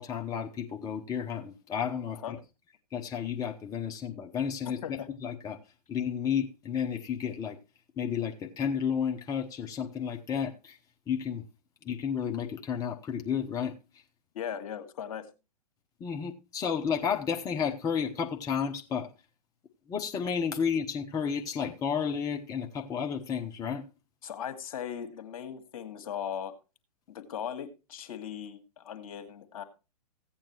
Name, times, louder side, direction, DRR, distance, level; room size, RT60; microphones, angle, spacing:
voice 1, 0.0-2.4 2.9-5.6 5.9-7.6 8.0-10.8 11.1-11.4 11.8-14.0 16.0-19.1 19.9-23.8, left 7 dB, 15° left, 0.8 m, -32 dB
voice 2, 4.6-5.1 14.3-15.3 24.2-26.5 27.1-29.6, left 8 dB, 60° left, 1.7 m, -38 dB
15.0 x 8.8 x 3.0 m
figure-of-eight pair, 115°, 21 cm